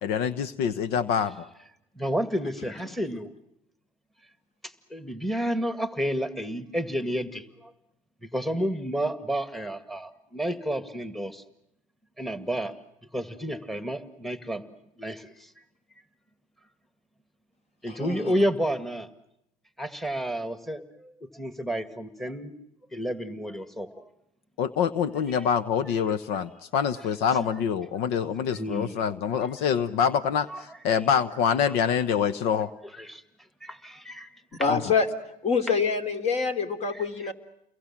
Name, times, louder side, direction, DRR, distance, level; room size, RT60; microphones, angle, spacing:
voice 1, 0.0-1.3 24.6-32.7 34.7-34.8, left 7 dB, 70° left, 15 dB, 1.1 m, -25 dB
voice 2, 2.0-3.3 4.9-7.7 8.2-11.4 12.2-12.8 13.1-14.6 15.0-15.5 17.8-19.1 19.8-22.5 22.9-24.1 25.3-25.5 27.4-27.5 28.5-29.0 30.5-30.6 32.9-33.2 33.6-34.3 34.6-34.7 36.9-37.3, equal, ahead, 11 dB, 2.0 m, -31 dB
voice 3, 17.9-18.3 34.6-35.1 35.4-37.3, left 5 dB, 40° left, 9 dB, 3.3 m, -26 dB
30.0 x 22.5 x 7.4 m, 0.80 s
supercardioid pair, 90°, 17 cm